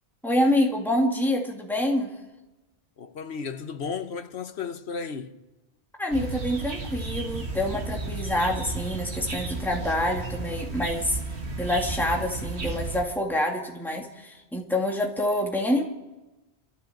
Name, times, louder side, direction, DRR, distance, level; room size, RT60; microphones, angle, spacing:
voice 1, 0.2-2.1 6.0-11.2 11.6-15.8, left 1 dB, ahead, 2.2 m, -26 dB
voice 2, 3.0-5.4, left 5 dB, 75° left, 1.3 m, -34 dB
sound 1, 6.1-13.0, right 3 dB, 80° right, 1.9 m, -33 dB
28.0 x 14.0 x 7.2 m
omnidirectional pair, 1.1 m